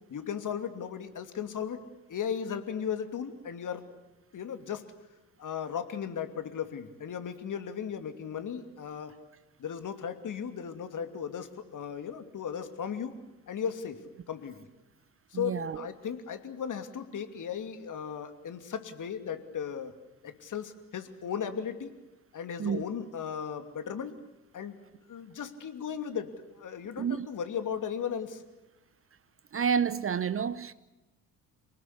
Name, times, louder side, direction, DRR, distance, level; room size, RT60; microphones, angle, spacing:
voice 1, 0.1-1.8 2.1-3.8 4.3-4.8 5.4-9.1 9.6-13.2 13.5-14.0 14.3-14.7 15.3-19.9 20.2-21.9 22.3-24.2 24.5-24.8 25.1-28.4, left 7 dB, 40° left, 2.8 m, -36 dB
voice 2, 15.3-15.9 22.6-22.8 27.0-27.3 29.5-30.7, right 7 dB, 30° right, 0.9 m, -29 dB
28.0 x 19.5 x 8.4 m
figure-of-eight pair, 55°, 46 cm